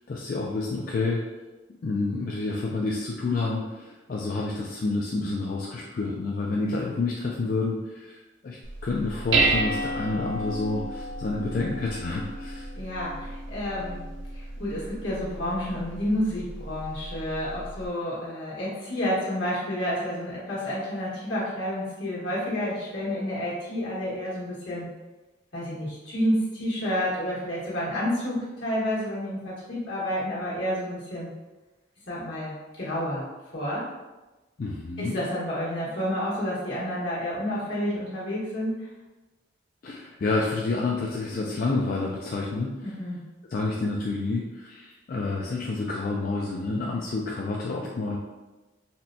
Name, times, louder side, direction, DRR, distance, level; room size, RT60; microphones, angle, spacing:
voice 1, 0.1-1.2 1.8-12.7 34.6-35.1 39.8-42.7 43.5-48.2, left 3 dB, 45° left, -3 dB, 0.3 m, -29 dB
Dishes pots and pans, 8.6-17.9, right 2 dB, 80° right, 0.5 m, -32 dB
voice 2, 12.8-14.0 14.3-24.9 25.5-31.3 32.1-33.3 33.5-33.9 35.0-38.9 42.8-43.2, equal, 75° left, -7 dB, 1.4 m, -30 dB
4.2 x 2.2 x 2.6 m, 1.1 s
head